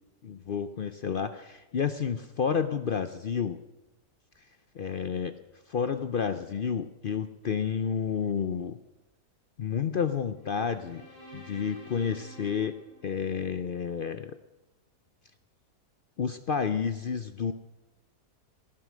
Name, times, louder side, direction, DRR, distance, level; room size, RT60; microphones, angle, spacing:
voice 1, 0.2-3.6 4.7-5.4 5.7-8.8 9.6-11.1 11.3-12.8 13.0-14.4 16.2-17.5, left 7 dB, 75° left, 11 dB, 0.5 m, -30 dB
sound 1, 10.4-13.8, equal, 10° left, 6.3 m, -50 dB
18.5 x 11.5 x 6.3 m, 1.0 s
omnidirectional pair, 1.7 m